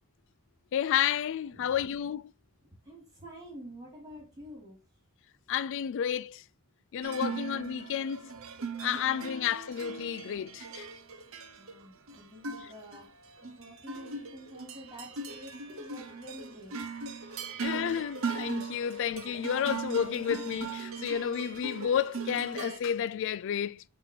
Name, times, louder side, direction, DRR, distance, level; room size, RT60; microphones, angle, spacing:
voice 1, 0.7-2.3 5.5-6.4 6.9-8.3 8.8-10.9 17.6-23.8, left 9 dB, 60° left, 0.3 m, -31 dB
voice 2, 2.8-4.8 7.2-7.5 8.9-9.3 11.6-13.0 13.4-16.7 17.7-17.9, equal, 15° right, 2.6 m, -48 dB
sound 1, 7.0-22.8, right 4 dB, 65° right, 0.9 m, -39 dB
8.0 x 2.9 x 4.4 m
head